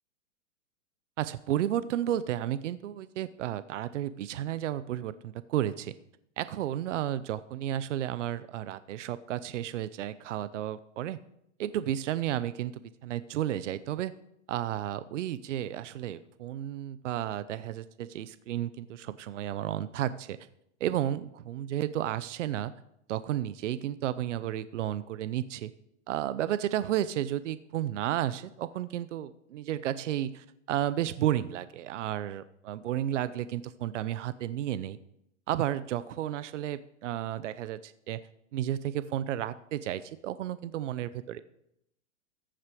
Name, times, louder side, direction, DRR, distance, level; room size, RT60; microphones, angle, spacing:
voice 1, 1.2-6.0 6.4-11.2 11.6-14.1 14.5-20.5 20.8-22.7 23.1-25.7 26.1-35.0 35.5-38.2 38.5-41.4, right 12 dB, 70° right, 15 dB, 0.7 m, -32 dB
14.5 x 7.8 x 4.9 m, 0.78 s
supercardioid pair, 175°, 38 cm